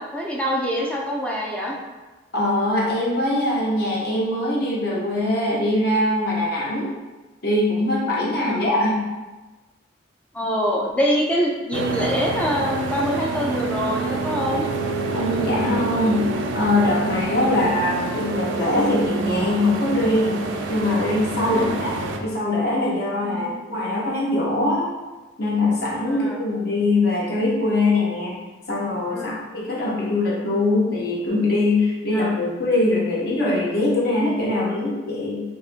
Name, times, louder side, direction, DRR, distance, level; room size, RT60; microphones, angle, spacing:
voice 1, 0.0-1.7 8.5-8.7 10.3-14.7 21.5-21.8 23.2-23.5 26.1-26.4 29.1-29.4 32.1-32.3 34.6-34.8, equal, 5° left, -3 dB, 0.4 m, -25 dB
voice 2, 2.3-6.9 7.4-9.0 15.1-16.2 16.5-20.4 20.7-24.9 25.4-28.4 28.7-35.4, left 2 dB, 55° left, -4 dB, 0.7 m, -22 dB
sound 1, 11.7-22.2, right 3 dB, 85° right, 0.3 m, -27 dB
3.7 x 2.4 x 2.4 m, 1.2 s
head